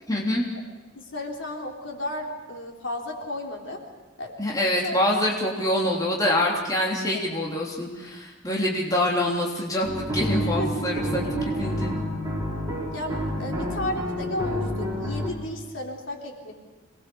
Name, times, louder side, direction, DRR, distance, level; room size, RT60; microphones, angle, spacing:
voice 1, 0.1-0.4 4.4-11.2 11.6-11.9, left 1 dB, 20° left, -3 dB, 3.3 m, -25 dB
voice 2, 0.9-3.8 4.2-4.3 4.8-5.0 7.1-7.2 10.4-10.9 11.2-11.6 12.9-16.5, left 1 dB, 65° left, 0 dB, 3.7 m, -34 dB
sound 1, 9.8-15.3, equal, 15° right, 4.5 m, -28 dB
26.5 x 20.0 x 7.0 m, 1.2 s
head